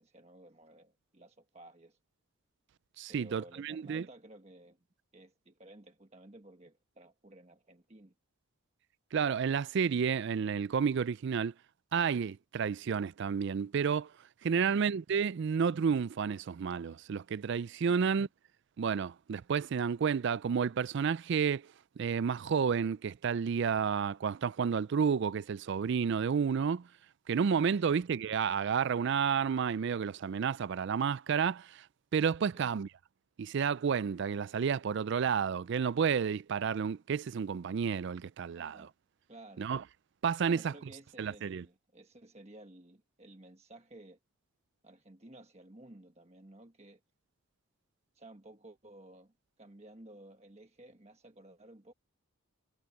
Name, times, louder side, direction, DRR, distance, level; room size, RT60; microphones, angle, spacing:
voice 1, 0.0-2.0 3.1-4.9 5.1-8.1 27.7-28.0 32.5-32.7 38.6-38.9 39.3-39.6 40.5-44.2 44.8-47.0 48.1-51.9, right 1 dB, 30° right, 1.3 m, -55 dB
voice 2, 3.0-4.0 9.1-11.5 11.9-14.1 14.4-18.3 18.8-21.7 22.0-26.9 27.3-31.8 32.1-32.9 33.4-38.8 39.6-39.8 40.2-40.7 41.2-41.6, right 6 dB, 55° right, 0.3 m, -31 dB
head